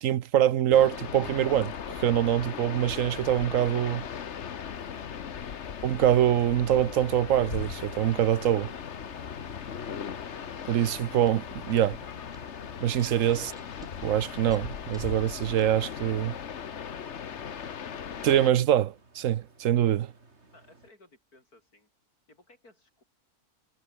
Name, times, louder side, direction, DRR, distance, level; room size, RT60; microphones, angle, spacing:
voice 1, 0.0-4.1 5.8-8.7 10.7-12.0 12.8-13.5 14.0-16.3 18.2-20.1, right 11 dB, 65° right, 1.0 m, -24 dB
sound 1, 0.7-18.5, left 7 dB, 55° left, 1.3 m, -38 dB
sound 2, 7.6-20.9, right 3 dB, 45° right, 3.6 m, -58 dB
sound 3, 10.7-11.3 11.6-11.9 12.3-12.4 12.9-13.9 14.4-15.2 15.5-16.0, equal, ahead, 3.4 m, -56 dB
voice 2, 20.5-21.9 22.3-23.0, left 2 dB, 80° left, 6.9 m, -59 dB
omnidirectional pair, 1.6 m